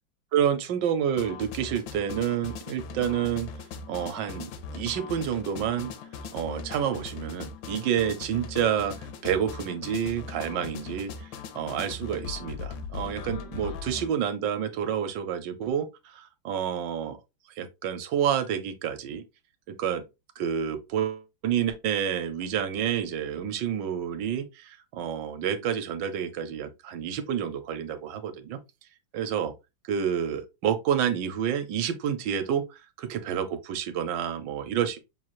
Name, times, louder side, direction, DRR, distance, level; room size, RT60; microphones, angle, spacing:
voice 1, 0.3-3.5 3.9-5.9 6.3-8.9 9.2-11.3 11.5-17.2 17.6-19.2 19.7-20.0 20.4-28.6 29.1-29.5 29.9-32.6 33.0-35.0, right 9 dB, 75° right, 1.3 m, -29 dB
sound 1, 1.2-14.1, left 5 dB, 85° left, 1.4 m, -39 dB
6.0 x 2.4 x 3.0 m
omnidirectional pair, 2.1 m